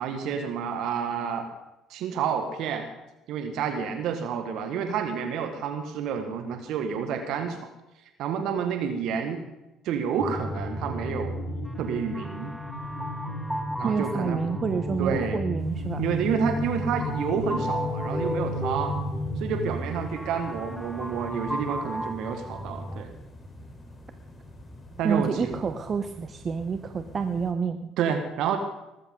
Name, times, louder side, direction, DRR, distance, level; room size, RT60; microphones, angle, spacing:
voice 1, 0.0-1.5 1.9-2.9 3.3-7.6 8.2-9.4 9.8-11.3 11.8-12.5 13.8-14.4 15.0-15.4 16.0-19.0 19.4-23.1 25.0-25.6 28.0-28.6, right 7 dB, 65° right, 6 dB, 1.8 m, -29 dB
sound 1, 10.2-19.7, left 1 dB, 70° left, 2.2 m, -35 dB
sound 2, 10.2-23.1, equal, ahead, 1.1 m, -35 dB
voice 2, 13.8-16.1 25.0-27.9, right 5 dB, 40° right, 8 dB, 1.0 m, -28 dB
sound 3, 15.6-27.5, left 1 dB, 25° left, 4.2 m, -47 dB
19.5 x 14.0 x 3.9 m, 0.94 s
hypercardioid pair, 60°, 0 cm